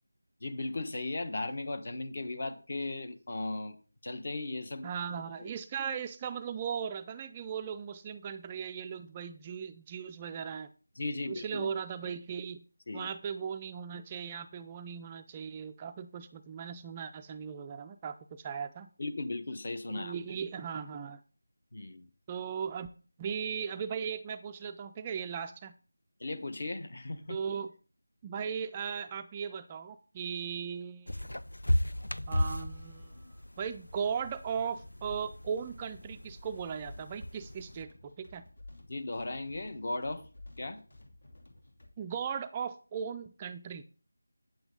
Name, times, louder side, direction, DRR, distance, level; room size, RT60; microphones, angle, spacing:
voice 1, 0.4-3.8 4.0-4.9 5.4-5.5 11.0-11.7 12.9-13.1 19.0-20.4 21.7-22.1 26.2-27.4 38.9-40.2 40.6-40.8, left 2 dB, 45° left, 10 dB, 1.2 m, -37 dB
voice 2, 4.8-10.7 11.3-12.6 12.9-18.9 19.9-21.2 22.3-22.9 23.2-25.7 27.3-27.7 28.2-31.3 32.3-33.2 33.6-38.4 42.0-43.8, right 7 dB, 15° right, 8 dB, 0.3 m, -37 dB
sound 1, 31.1-37.8, left 1 dB, 90° left, 0.5 m, -36 dB
sound 2, 34.8-41.9, left 2 dB, 65° left, 2.8 m, -53 dB
9.1 x 7.9 x 3.7 m, 0.38 s
figure-of-eight pair, 170°, 0 cm